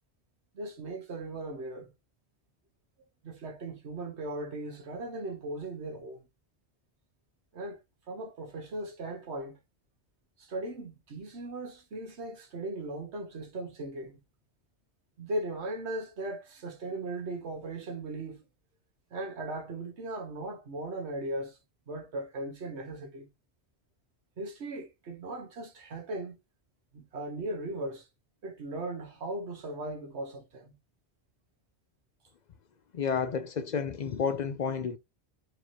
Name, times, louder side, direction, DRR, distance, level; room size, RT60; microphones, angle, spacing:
voice 1, 0.5-1.9 3.2-6.3 7.5-7.8 8.1-9.6 10.4-14.2 15.2-18.5 19.1-21.6 21.9-23.3 24.4-26.4 26.9-28.1 28.4-30.7, right 2 dB, 85° right, 1.5 m, -38 dB
voice 2, 32.9-35.0, left 6 dB, 55° left, 0.5 m, -31 dB
4.6 x 2.8 x 3.0 m
omnidirectional pair, 1.1 m